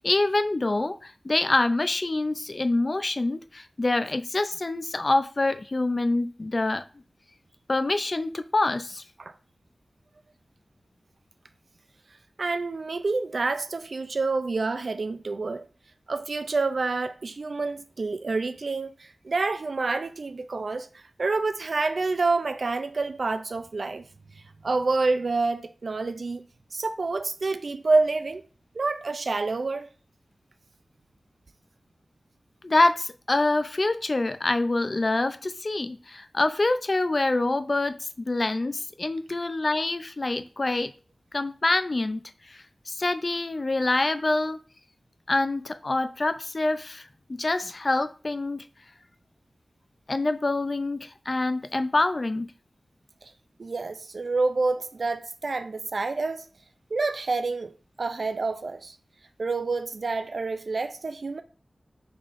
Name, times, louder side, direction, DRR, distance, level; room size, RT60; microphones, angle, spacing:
voice 1, 0.0-6.8 7.7-9.0 32.6-40.9 41.3-42.2 42.5-44.6 45.3-48.6 50.1-52.5, left 2 dB, 45° left, 0.3 m, -26 dB
voice 2, 12.4-15.7 16.1-24.0 24.6-26.4 26.7-28.4 28.8-29.9 53.6-56.5 56.9-57.7 58.0-58.9 59.4-61.4, right 3 dB, 65° right, 0.3 m, -28 dB
5.4 x 3.4 x 2.5 m
wide cardioid pair, 80°, 0 cm